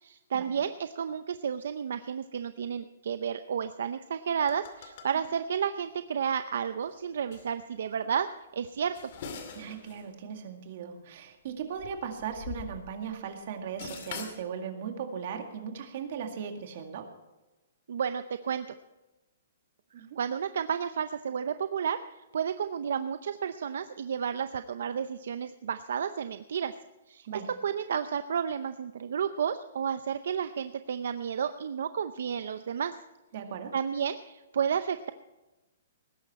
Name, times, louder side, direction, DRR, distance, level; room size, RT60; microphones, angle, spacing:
voice 1, 0.0-8.3 8.5-8.9 17.9-18.7 20.0-26.7 27.1-27.3 27.6-33.0 33.7-35.1, right 7 dB, 65° right, 11 dB, 0.6 m, -32 dB
sound 1, 4.4-5.1 5.8-5.9 6.8-7.0 7.3-7.5 8.7-10.1 10.3-10.4 11.5-13.2 13.4-14.4, left 6 dB, 45° left, 2.3 m, -43 dB
voice 2, 9.5-17.1 19.9-20.1 27.3-27.5 33.3-33.7, right 7 dB, 45° right, 5 dB, 2.1 m, -38 dB
19.5 x 10.5 x 4.3 m, 1.1 s
hypercardioid pair, 170°, 0 cm